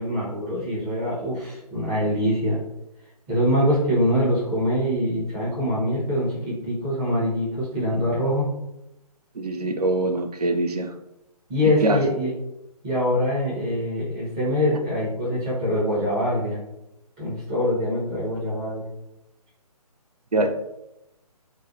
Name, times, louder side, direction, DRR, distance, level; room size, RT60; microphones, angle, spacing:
voice 1, 0.0-2.6 3.3-8.5 11.5-12.3 12.8-16.6 17.2-18.9, equal, 10° right, -9 dB, 0.5 m, -24 dB
voice 2, 9.4-10.9 11.8-12.0 20.3-20.5, right 2 dB, 80° right, 6 dB, 0.4 m, -23 dB
2.5 x 2.0 x 2.5 m, 0.88 s
figure-of-eight pair, 140°, 20 cm